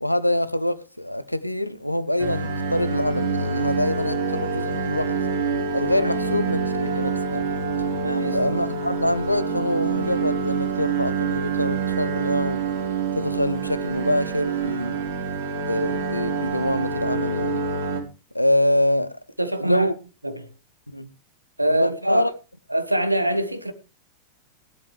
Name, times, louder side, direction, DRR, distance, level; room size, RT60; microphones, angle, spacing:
voice 1, 0.0-5.1 5.7-7.4 8.3-12.6 13.2-15.0 15.6-17.7 18.3-19.1 19.6-19.9 20.9-21.1 21.7-22.3, left 1 dB, 90° left, 0.9 m, -25 dB
sound 1, 2.2-18.0, right 5 dB, 55° right, 3.4 m, -26 dB
voice 2, 8.0-8.5 19.4-19.9 20.2-20.5 21.6-22.3 22.7-23.7, right 1 dB, 85° right, 1.4 m, -24 dB
16.5 x 11.5 x 3.3 m
figure-of-eight pair, 90°, 0 cm